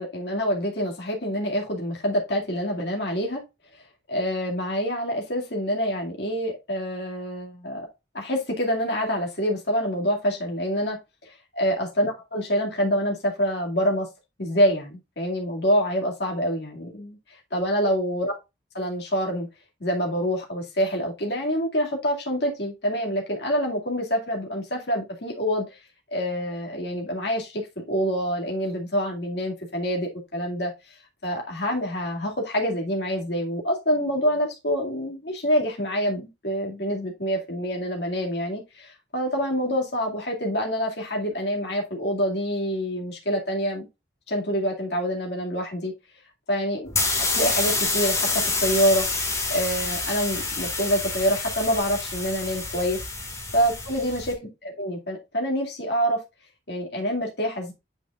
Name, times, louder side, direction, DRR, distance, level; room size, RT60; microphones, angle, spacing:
voice 1, 0.0-3.4 4.1-7.9 8.1-11.0 11.6-14.1 14.4-17.2 17.5-18.3 18.7-19.5 19.8-25.8 26.1-31.0 31.2-43.9 44.3-45.9 46.5-49.1 49.5-53.0 53.5-56.2 56.7-57.7, equal, 60° left, 0 dB, 2.2 m, -26 dB
sound 1, 46.9-54.3, left 3 dB, 15° left, 1.8 m, -27 dB
9.2 x 4.9 x 2.4 m, 0.24 s
head